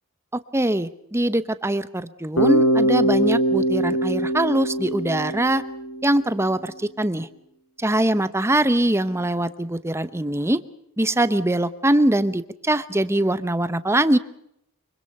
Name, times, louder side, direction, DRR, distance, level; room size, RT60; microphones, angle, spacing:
voice 1, 0.3-5.6 6.0-7.3 7.8-10.6 11.0-14.2, right 1 dB, 10° right, 13 dB, 0.9 m, -22 dB
Bass guitar, 2.4-6.3, right 1 dB, 70° left, 3.6 m, -22 dB
25.0 x 23.5 x 5.5 m, 0.76 s
head